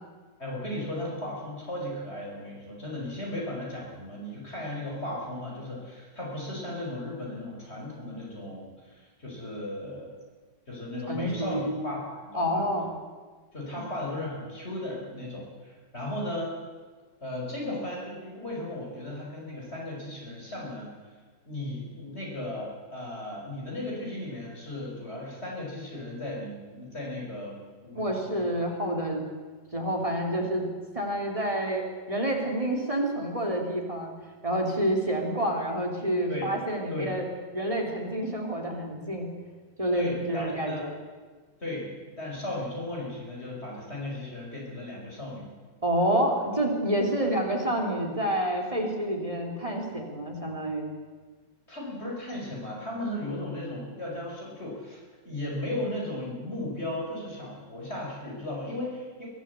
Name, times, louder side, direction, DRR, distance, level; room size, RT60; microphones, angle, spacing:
voice 1, 0.4-10.1 10.7-12.7 13.5-16.5 17.2-20.9 21.5-27.6 27.8-28.5 36.3-36.5 36.9-37.1 39.9-40.9 41.6-45.5 47.2-47.3 51.7-59.3, left 1 dB, 35° left, -3 dB, 5.3 m, -36 dB
voice 2, 11.1-11.7 12.3-12.9 27.9-29.2 29.7-30.7 30.9-34.1 34.4-37.3 37.5-39.3 39.8-40.9 45.8-50.9, right 1 dB, 20° right, 1 dB, 3.1 m, -28 dB
23.0 x 14.0 x 8.1 m, 1.4 s
omnidirectional pair, 2.0 m